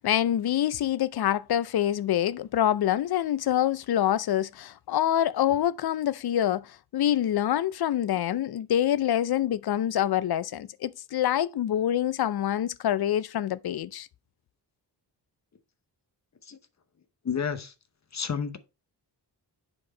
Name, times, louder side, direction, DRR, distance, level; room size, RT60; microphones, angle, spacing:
voice 1, 0.0-14.1, left 11 dB, 65° left, 0.5 m, -26 dB
voice 2, 17.2-17.7 18.1-18.6, left 6 dB, 40° left, 0.9 m, -30 dB
7.6 x 4.5 x 4.3 m
wide cardioid pair, 125°, 42 cm